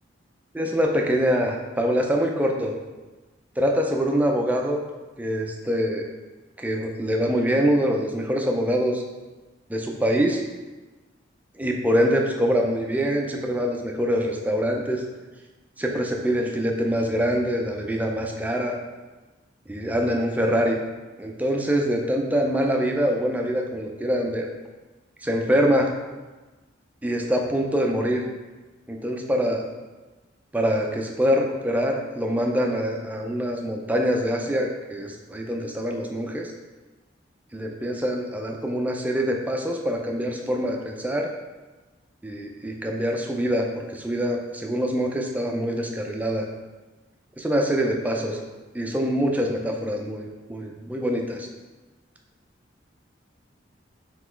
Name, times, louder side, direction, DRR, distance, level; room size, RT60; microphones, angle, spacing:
voice 1, 0.5-2.7 3.6-4.8 5.2-6.1 6.6-9.0 9.7-10.4 11.6-15.0 15.8-18.8 19.7-20.8 21.2-24.5 25.2-25.9 27.0-28.2 28.9-29.7 30.5-36.5 37.5-41.3 42.2-46.5 47.4-48.4 48.7-51.5, equal, 10° right, 1 dB, 0.4 m, -24 dB
4.0 x 3.0 x 4.4 m, 1.2 s
head